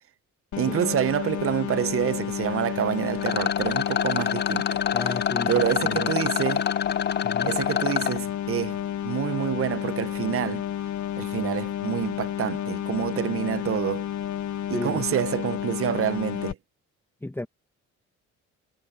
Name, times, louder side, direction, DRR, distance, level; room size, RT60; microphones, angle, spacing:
sound 1, 0.5-16.5, left 11 dB, 75° left, 1.5 m, -31 dB
voice 1, 0.6-4.8 5.5-6.7 7.4-8.8 9.0-10.6 11.2-14.1 14.7-16.6, right 10 dB, 45° right, 0.7 m, -27 dB
Rattle, 3.2-8.2, left 8 dB, 35° left, 0.6 m, -27 dB
voice 2, 4.9-6.1 7.2-7.5 14.7-15.1 17.2-17.5, left 1 dB, 5° left, 1.3 m, -34 dB
cardioid pair, 90°, 30 cm